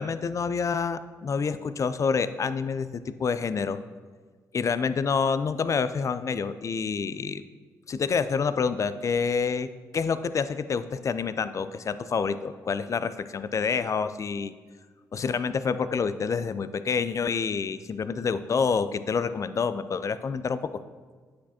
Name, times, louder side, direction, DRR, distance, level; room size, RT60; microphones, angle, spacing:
voice 1, 0.0-3.8 4.5-7.4 7.9-9.7 9.9-14.5 15.1-20.6, left 5 dB, 40° left, 13 dB, 0.4 m, -27 dB
9.5 x 6.0 x 2.9 m, 1.5 s
hypercardioid pair, 40°, 8 cm